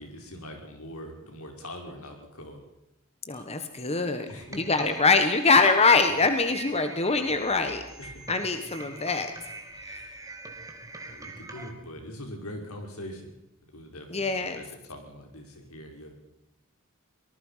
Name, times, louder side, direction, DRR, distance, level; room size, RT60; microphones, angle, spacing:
voice 1, 0.0-2.6 4.3-4.6 8.0-8.3 10.0-10.3 11.0-13.4 13.7-16.1, left 1 dB, 85° left, 3 dB, 5.4 m, -42 dB
voice 2, 3.3-7.8 8.3-9.3 9.9-10.0 14.1-14.6, left 4 dB, 30° left, 7 dB, 1.5 m, -24 dB
sound 1, 3.3-11.7, right 2 dB, 15° right, 2.6 m, -43 dB
24.5 x 19.5 x 5.8 m, 0.83 s
head